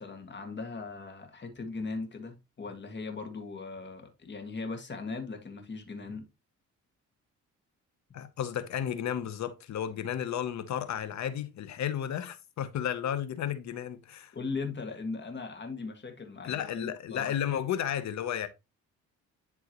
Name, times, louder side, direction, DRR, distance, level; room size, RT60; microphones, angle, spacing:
voice 1, 0.0-6.3 14.3-17.3, left 4 dB, 35° left, 2.0 m, -39 dB
voice 2, 8.1-14.3 16.4-18.5, left 9 dB, 65° left, 0.9 m, -33 dB
11.0 x 3.7 x 3.0 m
cardioid pair, 90°, 30 cm